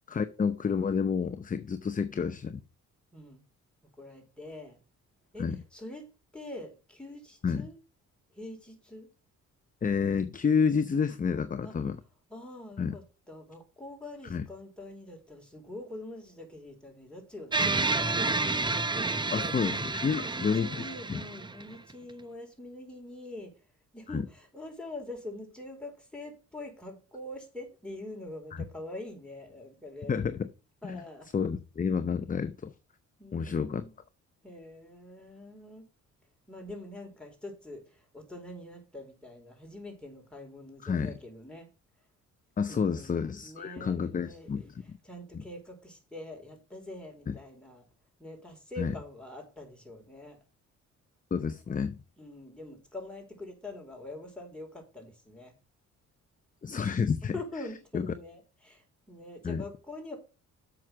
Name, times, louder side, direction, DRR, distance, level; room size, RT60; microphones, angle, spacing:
voice 1, 0.1-2.6 5.4-5.6 7.4-7.7 9.8-12.0 12.8-13.0 14.3-14.4 19.3-20.7 21.1-21.2 24.1-24.2 30.1-30.5 30.8-31.0 31.3-32.7 33.3-33.8 40.8-41.1 42.6-45.0 47.3-47.4 48.8-48.9 51.3-52.0 56.6-57.3 57.9-58.1 59.4-59.6, left 6 dB, 25° left, 0.7 m, -29 dB
voice 2, 3.1-3.4 4.0-4.8 5.3-6.1 6.3-7.8 8.3-9.1 11.6-11.8 12.3-19.5 20.1-23.6 23.9-30.2 30.8-31.3 33.2-34.0 34.4-35.9 36.5-41.7 42.7-47.8 48.2-50.4 52.2-55.5 57.2-60.2, left 1 dB, 5° left, 4.5 m, -44 dB
sound 1, 17.5-21.9, right 3 dB, 15° right, 0.7 m, -30 dB
7.5 x 6.2 x 6.9 m
cardioid pair, 90°, 30 cm